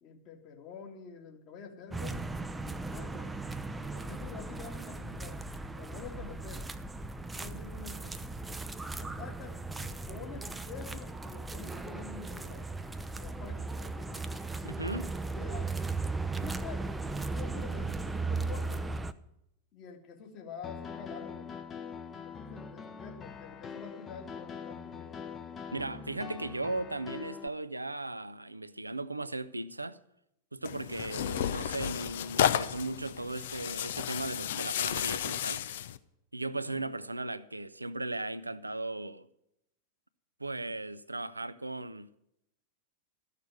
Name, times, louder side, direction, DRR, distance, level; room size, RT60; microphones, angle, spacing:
voice 1, 0.0-3.3 3.8-5.4 5.7-6.7 7.3-8.2 8.9-12.7 13.2-14.2 15.1-15.7 16.4-19.0 19.7-21.5 22.2-25.3 36.5-36.9, left 6 dB, 40° left, 2.3 m, -48 dB
sound 1, 1.9-19.1, right 3 dB, 10° right, 0.6 m, -37 dB
voice 2, 14.6-15.1 25.7-30.0 30.5-35.6 36.3-39.3 40.4-42.1, right 2 dB, 85° right, 0.6 m, -37 dB
Piano, 20.6-27.5, left 6 dB, 25° left, 1.0 m, -43 dB
Tearing, 30.6-36.0, left 10 dB, 60° left, 0.6 m, -32 dB
14.0 x 6.6 x 9.6 m
figure-of-eight pair, 90°, 0 cm